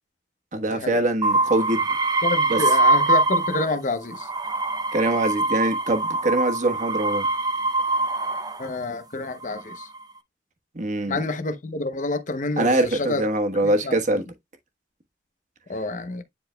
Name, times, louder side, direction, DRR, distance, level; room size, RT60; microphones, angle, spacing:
voice 1, 0.5-1.9 2.5-2.6 4.9-7.3 10.7-11.2 12.6-14.2, right 2 dB, 45° right, 1.3 m, -23 dB
sound 1, 1.2-3.8 4.1-8.7 9.4-10.0, right 2 dB, 20° right, 0.5 m, -23 dB
voice 2, 2.2-4.3 8.6-9.9 11.1-13.2 13.6-14.0 15.7-16.2, left 3 dB, 45° left, 0.8 m, -28 dB
9.9 x 4.4 x 2.2 m
head